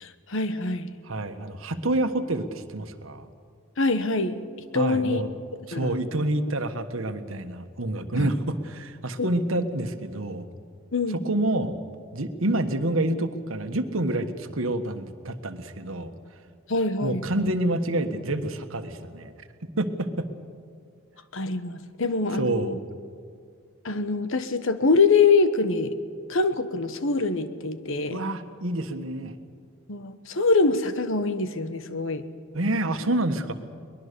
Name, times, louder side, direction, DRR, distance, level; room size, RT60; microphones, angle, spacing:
voice 1, 0.0-0.9 3.8-4.4 4.7-5.2 5.7-6.0 8.2-8.3 9.2-9.3 10.9-11.2 16.7-17.2 21.3-22.8 23.8-25.9 26.3-28.2 29.9-32.2, left 3 dB, 70° left, 11 dB, 1.2 m, -24 dB
voice 2, 1.0-3.3 4.7-5.3 5.7-10.5 11.1-11.8 12.1-16.1 17.0-19.3 19.8-20.3 22.3-22.8 28.1-29.3 32.5-33.5, right 1 dB, 75° right, 8 dB, 1.4 m, -28 dB
22.5 x 21.0 x 6.9 m, 2.2 s
head